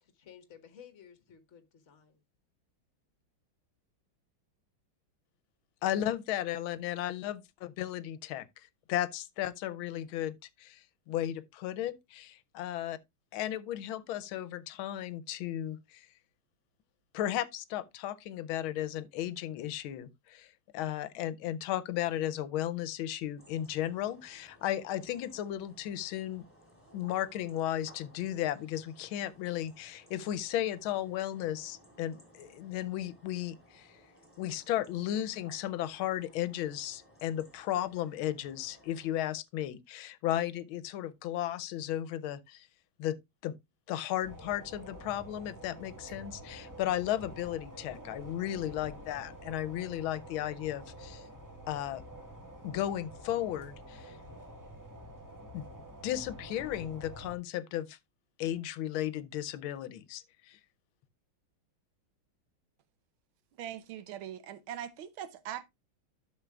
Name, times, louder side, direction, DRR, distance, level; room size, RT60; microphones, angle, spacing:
voice 1, 0.0-2.2, left 8 dB, 40° left, 1.4 m, -55 dB
voice 2, 5.8-8.5 8.9-13.0 13.3-16.1 17.1-26.4 26.9-33.9 34.4-42.7 43.0-43.2 43.4-43.5 43.9-51.3 51.7-52.0 52.6-54.2 55.5-55.7 56.0-58.0 58.4-60.6, left 12 dB, 85° left, 1.5 m, -35 dB
sound 1, 23.4-39.1, equal, 5° left, 2.8 m, -60 dB
sound 2, 44.2-57.4, right 1 dB, 10° right, 1.3 m, -48 dB
voice 3, 63.6-65.6, right 10 dB, 85° right, 1.6 m, -41 dB
12.0 x 6.5 x 2.4 m
omnidirectional pair, 2.2 m